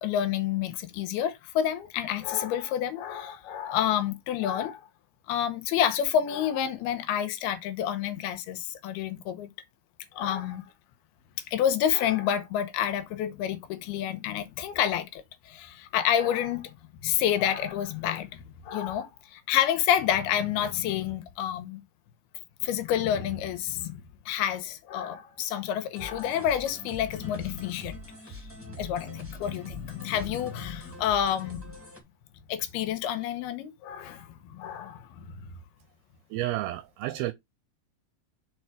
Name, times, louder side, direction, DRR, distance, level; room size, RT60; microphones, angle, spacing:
voice 1, 0.0-4.9 5.3-9.5 10.1-10.7 11.5-16.7 17.0-21.8 22.6-31.8 32.5-35.5, left 10 dB, 80° left, 2.7 m, -29 dB
sound 1, 25.9-32.0, left 1 dB, 10° right, 0.6 m, -44 dB
voice 2, 36.3-37.3, right 15 dB, 80° right, 2.3 m, -31 dB
6.2 x 4.6 x 4.8 m
omnidirectional pair, 4.7 m